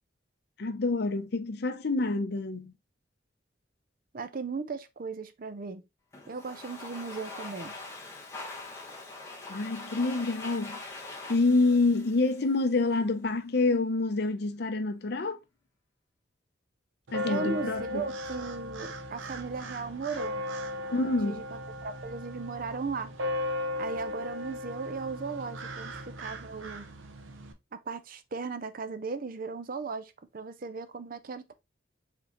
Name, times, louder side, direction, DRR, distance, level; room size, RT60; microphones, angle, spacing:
voice 1, 0.6-2.7 9.5-10.8 11.3-15.4 17.1-18.0 20.9-21.4, left 3 dB, 55° left, 0.6 m, -27 dB
voice 2, 4.1-5.8 6.3-7.7 17.3-20.4 21.0-21.4 21.8-23.1 23.8-26.9 27.7-31.5, right 4 dB, 45° right, 0.5 m, -37 dB
Domestic sounds home sounds, 6.1-13.0, left 3 dB, 15° left, 1.2 m, -43 dB
sound 1, 17.1-27.5, left 1 dB, 90° right, 0.8 m, -37 dB
4.6 x 3.7 x 3.0 m
head